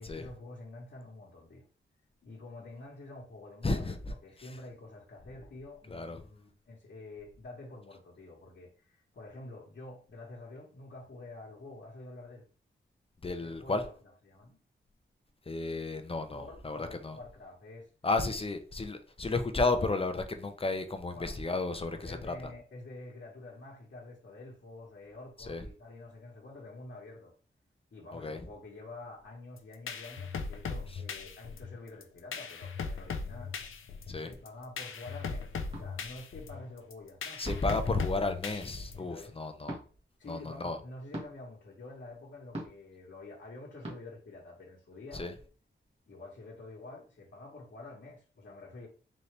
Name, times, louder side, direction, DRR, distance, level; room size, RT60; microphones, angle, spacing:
voice 1, 0.0-1.6 2.2-12.4 13.4-13.9 14.2-14.6 16.3-17.9 21.1-21.4 21.9-27.3 27.9-33.5 34.2-37.9 39.0-39.3 40.2-45.3 46.1-48.9, left 2 dB, 60° left, 1.2 m, -48 dB
voice 2, 3.6-4.1 5.9-6.2 13.2-13.8 15.5-17.2 18.0-22.3 25.5-25.7 28.1-28.4 34.1-34.3 37.4-39.8 40.3-40.8 45.1-45.3, left 3 dB, 30° left, 0.6 m, -32 dB
sound 1, 29.6-39.2, left 5 dB, 80° left, 0.5 m, -39 dB
sound 2, 35.7-35.9 37.4-37.8 39.6-39.8 41.1-41.3 42.5-42.9 43.8-44.0, right 1 dB, 30° right, 1.6 m, -40 dB
4.0 x 2.7 x 3.3 m
wide cardioid pair, 85°, 21 cm